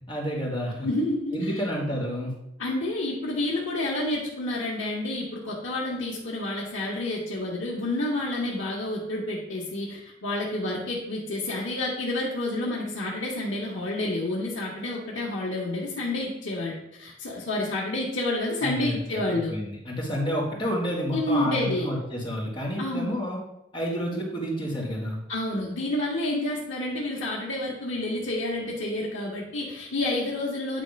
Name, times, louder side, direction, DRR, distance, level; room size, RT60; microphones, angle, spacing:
voice 1, 0.0-0.9 1.3-2.3 18.6-23.4 23.7-25.2, equal, 25° left, -3 dB, 1.7 m, -30 dB
voice 2, 0.8-1.5 2.6-19.5 21.1-21.9 22.8-23.2 25.3-30.8, left 1 dB, 90° left, -6 dB, 1.4 m, -29 dB
8.9 x 3.3 x 5.2 m, 0.83 s
head